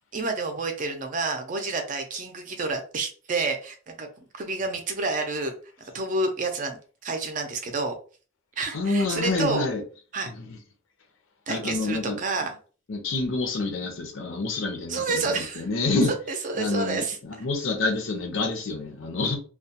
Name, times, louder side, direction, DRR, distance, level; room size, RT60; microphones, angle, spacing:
voice 1, 0.1-7.9 8.6-9.7 10.1-10.3 11.5-12.5 14.9-15.7 16.3-17.2, right 3 dB, 40° right, 0.4 m, -29 dB
voice 2, 8.7-9.8 10.5-10.6 11.5-12.2 12.9-16.1 16.6-19.4, left 3 dB, 70° left, 0.6 m, -27 dB
2.3 x 2.1 x 2.7 m
head